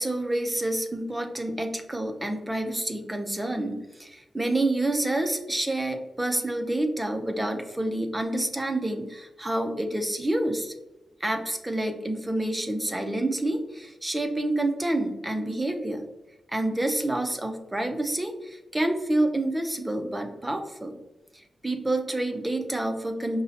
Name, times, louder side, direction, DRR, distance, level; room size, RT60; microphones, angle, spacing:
voice 1, 0.0-10.7 11.2-16.0 16.5-21.0 21.3-23.4, right 1 dB, 15° right, 5 dB, 0.5 m, -28 dB
5.4 x 2.1 x 2.7 m, 0.98 s
wide cardioid pair, 115°, 0 cm